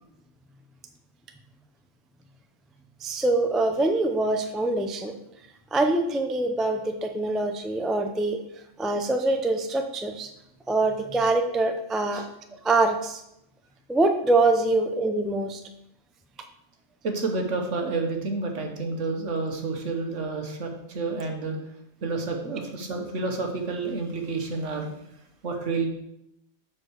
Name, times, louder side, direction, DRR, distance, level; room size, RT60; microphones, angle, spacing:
voice 1, 3.0-5.1 5.7-8.4 8.8-10.3 10.7-12.2 12.6-13.2 13.9-15.6, right 2 dB, ahead, 5 dB, 0.3 m, -24 dB
voice 2, 17.0-21.6 22.0-24.9 25.4-25.9, right 3 dB, 75° right, 3 dB, 1.6 m, -29 dB
7.5 x 4.4 x 6.4 m, 0.80 s
omnidirectional pair, 1.3 m